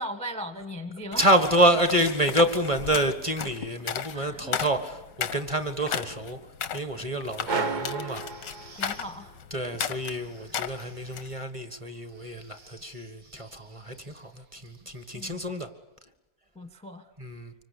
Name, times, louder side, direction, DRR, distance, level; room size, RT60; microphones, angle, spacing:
voice 1, 0.0-1.3 4.1-4.6 8.8-9.4 15.1-15.4 16.5-17.1, equal, 5° left, 8 dB, 1.1 m, -37 dB
sound 1, 1.1-11.3, left 8 dB, 85° left, 1.7 m, -35 dB
voice 2, 1.2-6.4 6.7-8.2 8.6-8.7 9.5-15.7 17.2-17.5, right 1 dB, 20° right, 8 dB, 1.6 m, -27 dB
sound 2, 7.5-9.2, right 3 dB, 35° right, 0.9 m, -32 dB
sound 3, 7.5-15.8, right 3 dB, 80° right, 3.1 m, -57 dB
26.0 x 24.0 x 8.5 m, 1.0 s
omnidirectional pair, 1.8 m